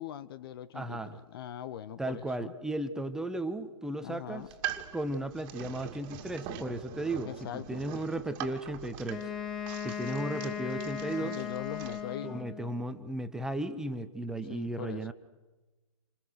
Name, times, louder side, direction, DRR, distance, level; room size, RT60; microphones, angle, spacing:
voice 1, 0.0-2.5 4.0-4.5 7.2-7.9 11.2-12.4 14.4-15.1, left 10 dB, 40° left, 0.9 m, -41 dB
voice 2, 0.7-1.2 2.0-4.5 4.9-9.2 9.8-11.4 12.2-15.1, right 1 dB, 5° right, 1.3 m, -35 dB
sound 1, 4.4-12.0, right 10 dB, 25° right, 2.4 m, -43 dB
Wind instrument woodwind instrument, 9.1-12.8, left 8 dB, 25° left, 4.5 m, -37 dB
28.5 x 26.5 x 6.4 m
figure-of-eight pair, 130°, 19 cm